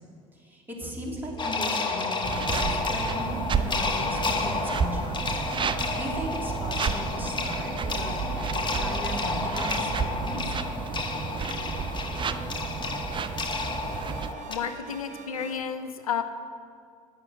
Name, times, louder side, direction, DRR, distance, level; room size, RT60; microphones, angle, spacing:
voice 1, 0.4-3.3 3.6-5.2 5.7-8.1 8.8-10.5, equal, 10° right, -3 dB, 2.6 m, -37 dB
sound 1, 0.8-15.6, right 3 dB, 45° right, 1.0 m, -43 dB
sound 2, 1.4-14.6, left 3 dB, 25° left, 1.1 m, -31 dB
sound 3, 2.2-14.3, right 6 dB, 30° right, 0.5 m, -32 dB
voice 2, 14.5-16.2, left 7 dB, 90° left, 10 dB, 0.5 m, -32 dB
9.0 x 5.9 x 7.5 m, 2.4 s
hypercardioid pair, 60°, 18 cm